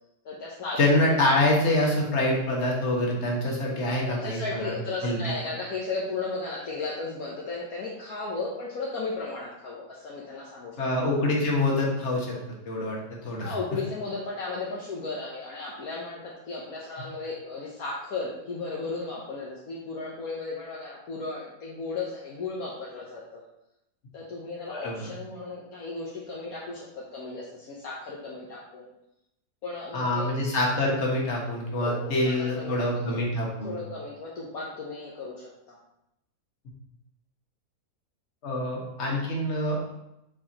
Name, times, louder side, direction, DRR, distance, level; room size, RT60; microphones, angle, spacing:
voice 1, 0.2-0.8 4.0-10.7 13.4-23.4 24.1-28.9 29.6-30.3 31.8-33.1 33.6-35.8, left 3 dB, 65° left, -4 dB, 1.4 m, -35 dB
voice 2, 0.8-4.8 5.0-5.3 10.8-12.4 12.6-13.5 24.7-25.1 29.9-33.8 38.4-39.8, left 1 dB, 45° left, -2 dB, 1.6 m, -26 dB
7.5 x 4.5 x 2.9 m, 0.85 s
omnidirectional pair, 1.7 m